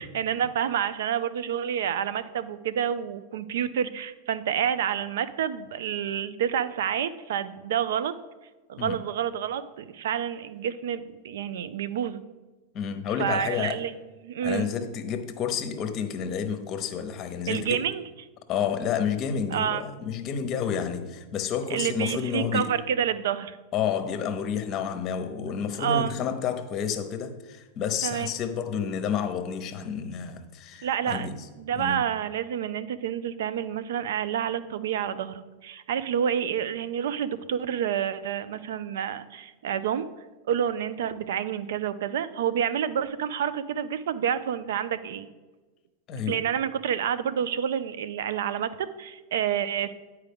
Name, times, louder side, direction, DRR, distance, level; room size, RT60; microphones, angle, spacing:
voice 1, 0.0-8.1 8.7-12.2 13.2-13.9 14.2-14.7 17.5-18.0 19.5-19.8 21.7-23.6 25.8-26.1 28.0-28.3 30.8-40.1 40.5-45.3 46.3-49.9, right 9 dB, 75° right, 0.4 m, -28 dB
voice 2, 12.7-13.8 14.4-17.8 18.5-22.7 23.7-31.4 31.7-32.1 46.1-46.4, left 7 dB, 40° left, 0.8 m, -30 dB
9.0 x 4.7 x 3.5 m
hypercardioid pair, 100°, 0 cm